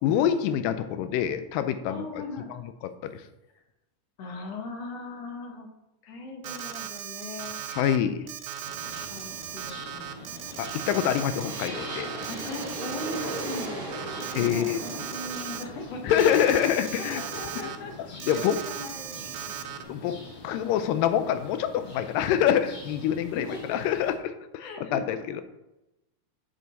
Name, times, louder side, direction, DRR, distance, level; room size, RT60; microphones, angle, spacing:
voice 1, 0.0-2.2 3.0-3.2 7.7-8.3 10.6-12.1 14.4-14.8 16.0-17.2 18.3-18.6 19.9-20.2 20.4-25.4, left 10 dB, 90° left, 10 dB, 2.2 m, -26 dB
voice 2, 1.9-2.5 4.2-5.7 6.0-7.6 8.9-10.3 12.3-14.0 14.4-16.3 16.7-17.9 18.2-19.6 23.3-23.8 24.6-25.4, left 2 dB, 65° left, 3 dB, 1.8 m, -39 dB
Alarm, 6.4-8.0 8.3-13.7 13.9-15.6 16.1-17.8 18.2-19.8, right 10 dB, 75° right, 1.9 m, -37 dB
sound 1, 8.6-24.2, left 3 dB, 45° left, 2.1 m, -45 dB
sound 2, 9.9-17.8, right 1 dB, 35° right, 1.2 m, -39 dB
7.5 x 5.6 x 4.0 m, 0.93 s
omnidirectional pair, 3.9 m